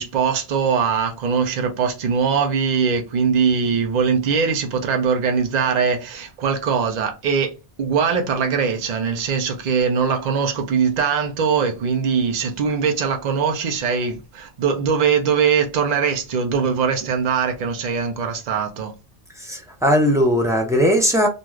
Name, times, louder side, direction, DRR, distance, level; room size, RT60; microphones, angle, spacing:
voice 1, 0.0-7.5 7.8-18.9, right 6 dB, 50° right, 0.6 m, -21 dB
voice 2, 19.4-21.3, equal, 5° right, 0.3 m, -18 dB
2.6 x 2.4 x 3.0 m
omnidirectional pair, 1.1 m